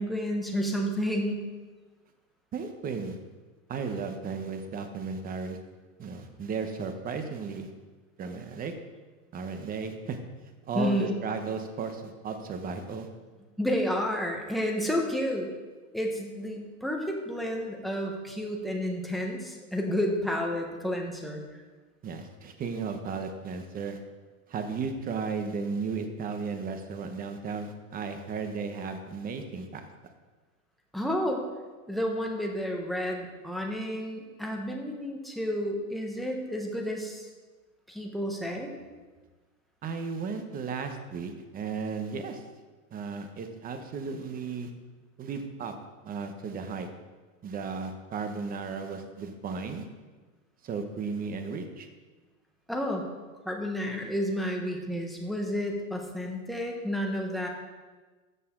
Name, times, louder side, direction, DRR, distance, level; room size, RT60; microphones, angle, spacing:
voice 1, 0.0-1.5 10.7-11.2 13.6-15.5 15.9-21.4 30.9-31.4 31.9-37.3 37.9-38.8 52.7-53.0 53.4-57.5, equal, ahead, 0 dB, 1.2 m, -31 dB
voice 2, 2.5-3.2 3.7-5.6 6.0-7.7 8.2-8.7 9.3-10.2 10.7-13.1 22.0-24.0 24.5-29.9 39.8-42.4 42.9-44.7 45.2-45.7 46.0-46.9 47.4-49.9 50.6-51.9, right 5 dB, 20° right, 7 dB, 1.0 m, -35 dB
13.0 x 6.8 x 3.8 m, 1.3 s
supercardioid pair, 135°, 41 cm